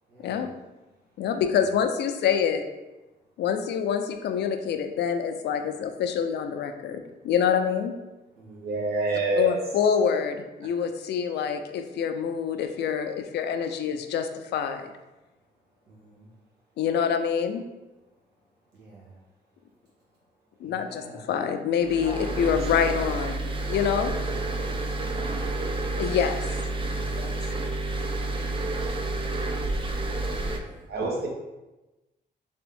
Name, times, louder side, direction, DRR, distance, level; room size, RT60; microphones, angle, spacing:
voice 1, 0.1-0.5 1.2-1.4 8.3-8.8 15.9-16.3 18.7-19.3 19.7-20.3 20.6-21.4 21.9-22.7 24.1-25.8 26.8-27.2 28.2-30.9, right 2 dB, 90° right, -6 dB, 1.2 m, -47 dB
voice 2, 1.2-2.6 3.4-8.0 9.4-14.9 16.8-17.7 20.6-24.1 26.0-26.4 27.1-27.3, left 7 dB, 75° left, 7 dB, 0.4 m, -26 dB
voice 3, 8.5-9.6 10.6-10.7 30.9-31.3, right 3 dB, 65° right, 0 dB, 0.9 m, -27 dB
sound 1, 21.8-30.6, right 2 dB, 30° right, 0.4 m, -29 dB
3.4 x 3.0 x 3.4 m, 1.1 s
cardioid pair, 100°, 17 cm